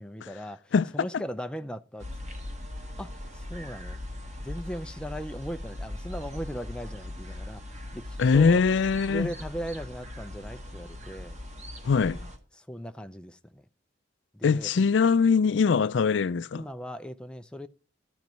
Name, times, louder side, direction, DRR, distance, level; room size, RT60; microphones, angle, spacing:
voice 1, 0.0-0.6 0.9-2.1 3.0-4.0 4.4-7.6 7.9-8.1 8.3-8.6 9.1-11.4 12.0-12.3 12.6-13.6 14.3-14.7 16.5-17.7, equal, 5° left, 0.4 m, -38 dB
sound 1, 2.0-12.4, left 1 dB, 35° right, 1.6 m, -40 dB
voice 2, 8.2-9.3 11.8-12.2 14.4-16.6, left 5 dB, 65° left, 0.4 m, -22 dB
13.0 x 4.6 x 5.2 m
head